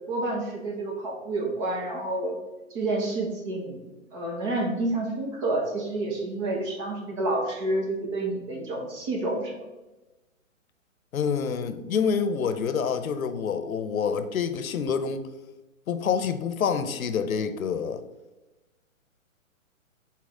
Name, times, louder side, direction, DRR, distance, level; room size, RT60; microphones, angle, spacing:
voice 1, 0.1-2.4 2.7-3.8 4.1-9.6, right 2 dB, 20° right, 0.9 m, -29 dB
voice 2, 11.1-15.3 15.9-18.0, left 6 dB, 90° left, 0.7 m, -27 dB
6.3 x 4.1 x 3.7 m
hypercardioid pair, 150°, 40 cm